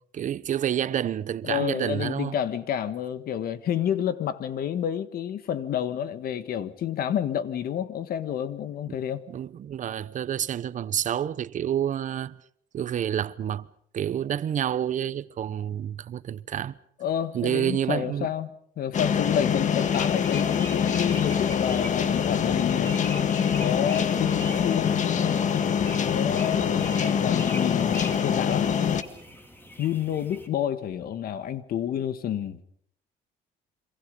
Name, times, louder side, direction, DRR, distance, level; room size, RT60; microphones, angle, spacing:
voice 1, 0.1-2.3 8.9-9.0 9.3-12.4 12.7-13.7 13.9-16.8 17.3-18.3, right 10 dB, 50° right, 0.9 m, -28 dB
voice 2, 1.4-9.2 17.0-23.0 23.6-25.1 26.0-28.8 29.8-32.6, left 9 dB, 60° left, 1.8 m, -29 dB
sound 1, 18.9-29.0, left 7 dB, 45° left, 1.8 m, -24 dB
sound 2, 19.9-30.5, equal, 10° left, 4.2 m, -43 dB
28.0 x 25.5 x 5.4 m
cardioid pair, 110°, 17 cm